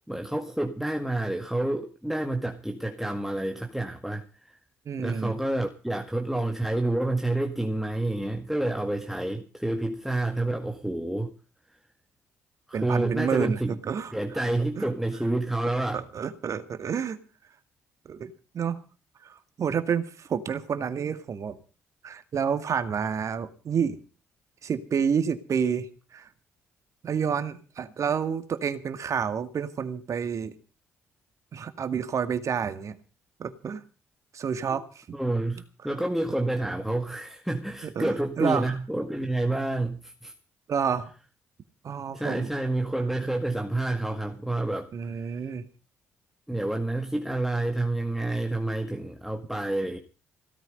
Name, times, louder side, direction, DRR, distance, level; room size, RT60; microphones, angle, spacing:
voice 1, 0.1-4.6 5.0-11.3 12.7-13.8 14.1-16.0 35.1-40.3 42.1-44.9 45.2-45.4 46.5-50.0, right 2 dB, 5° right, 4 dB, 2.0 m, -29 dB
voice 2, 4.9-5.4 12.7-14.1 14.8-14.9 15.9-17.2 18.1-18.8 19.2-21.6 22.0-24.0 24.6-26.3 27.0-30.5 31.5-33.0 33.4-33.8 34.3-35.0 38.0-38.7 40.7-41.1 41.8-42.5 44.9-45.7, right 7 dB, 50° right, 11 dB, 2.0 m, -29 dB
17.0 x 13.0 x 5.4 m, 0.37 s
hypercardioid pair, 45°, 7 cm